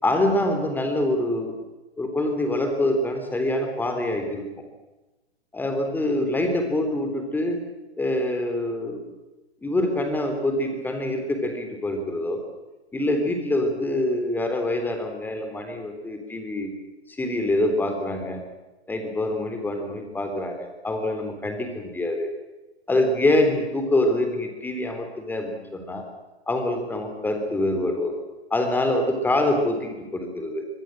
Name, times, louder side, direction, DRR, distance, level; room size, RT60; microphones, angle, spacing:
voice 1, 0.0-1.5 2.0-4.5 5.5-7.6 8.0-9.1 9.6-12.4 12.9-16.7 17.1-18.4 18.9-22.3 22.9-26.0 26.5-28.1 28.5-30.7, left 1 dB, 5° left, 5 dB, 3.5 m, -25 dB
25.0 x 19.0 x 7.7 m, 1.1 s
hypercardioid pair, 140°, 33 cm